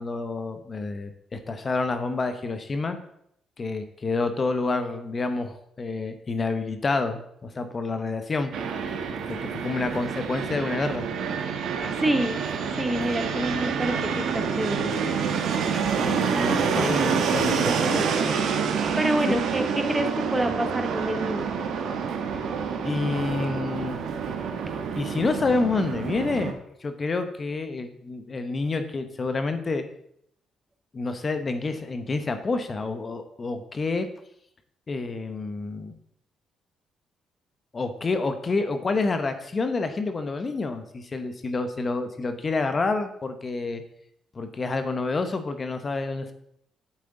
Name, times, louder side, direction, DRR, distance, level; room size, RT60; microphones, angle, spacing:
voice 1, 0.0-3.0 3.6-8.5 9.5-11.1 16.0-18.0 19.3-19.4 22.8-24.0 24.9-29.8 30.9-34.1 34.9-35.9 37.7-43.8 44.3-46.3, left 3 dB, 35° left, 8 dB, 1.0 m, -28 dB
Fixed-wing aircraft airplane, 8.5-26.5, right 6 dB, 75° right, 1.1 m, -27 dB
voice 2, 12.0-12.4 12.7-14.9 17.6-18.1 19.0-21.5, right 1 dB, 15° right, 8 dB, 0.8 m, -27 dB
8.6 x 7.5 x 3.8 m, 0.72 s
cardioid pair, 90°, 0 cm